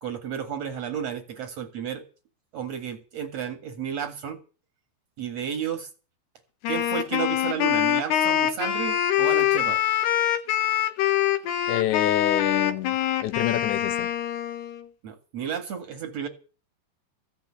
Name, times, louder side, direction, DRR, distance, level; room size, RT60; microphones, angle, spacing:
voice 1, 0.0-2.0 2.5-4.4 5.2-5.9 6.7-9.8 15.0-16.3, right 8 dB, 50° right, 2.3 m, -32 dB
Wind instrument woodwind instrument, 6.6-14.8, left 11 dB, 75° left, 3.3 m, -24 dB
voice 2, 11.7-14.1, left 13 dB, 90° left, 3.5 m, -28 dB
15.0 x 8.2 x 9.6 m
omnidirectional pair, 5.0 m